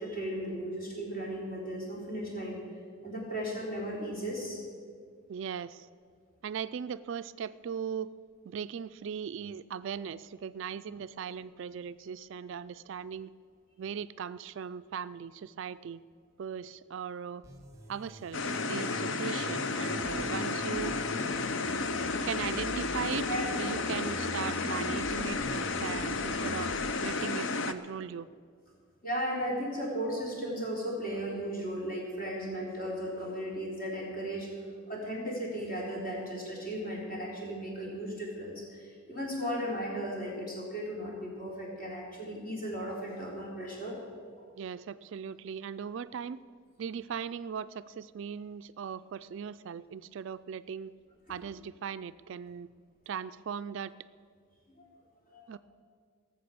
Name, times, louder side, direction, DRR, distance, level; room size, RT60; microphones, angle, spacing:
voice 1, 0.0-2.6 3.0-4.6 18.8-18.9 19.9-20.0 21.3-21.5 23.3-23.5 24.6-24.8 29.0-34.5 34.9-44.5 51.3-51.4 54.8-54.9 55.3-55.4, equal, 40° left, -4 dB, 3.7 m, -36 dB
voice 2, 5.3-5.9 6.4-8.1 8.5-13.3 13.8-16.0 16.4-17.4 17.9-21.0 22.2-23.3 23.6-28.3 44.6-46.4 46.8-50.9 51.3-52.7 53.1-53.9 55.5-55.6, right 7 dB, 55° right, 14 dB, 0.3 m, -38 dB
sound 1, 17.4-26.9, right 1 dB, 15° right, 1.3 m, -45 dB
sound 2, 18.3-27.7, left 3 dB, 55° left, 0.6 m, -32 dB
17.5 x 7.4 x 7.0 m, 2.1 s
head